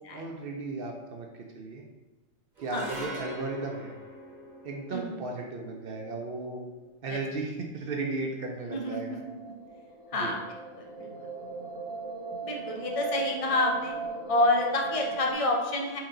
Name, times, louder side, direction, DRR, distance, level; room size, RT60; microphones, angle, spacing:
voice 1, 0.1-1.8 2.6-3.9 4.6-6.6 7.0-9.2 10.1-10.3, right 3 dB, 60° right, 1 dB, 0.6 m, -35 dB
sound 1, 2.6-9.0, equal, 40° right, 0.9 m, -45 dB
voice 2, 4.9-5.2 7.1-7.2 8.7-9.2 10.1-10.4 10.8-11.1 12.4-13.9 14.3-16.0, left 2 dB, 60° left, 0 dB, 0.3 m, -28 dB
sound 2, 9.1-15.3, right 4 dB, 85° left, 1.4 m, -38 dB
4.5 x 2.8 x 3.7 m, 1.1 s
omnidirectional pair, 1.4 m